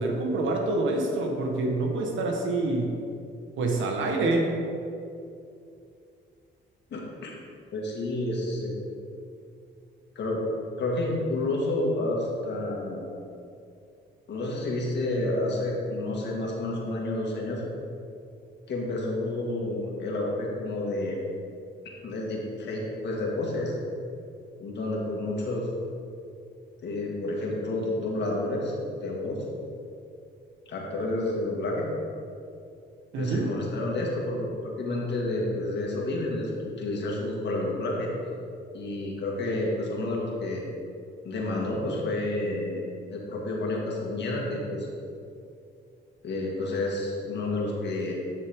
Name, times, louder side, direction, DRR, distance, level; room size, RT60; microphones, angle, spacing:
voice 1, 0.0-2.9 3.6-4.5 33.1-33.5, right 2 dB, 75° right, 2 dB, 1.4 m, -26 dB
voice 2, 6.9-7.3 7.7-8.8 10.2-10.4 10.8-13.2 14.3-17.6 18.7-21.2 22.0-23.8 24.6-25.7 26.8-28.7 29.0-29.4 30.7-31.9 33.2-38.1 38.7-40.6 41.2-42.8 43.1-44.9 46.2-48.1, left 2 dB, 60° left, -2 dB, 2.0 m, -30 dB
10.5 x 6.4 x 3.7 m, 2.5 s
cardioid pair, 90°, 20 cm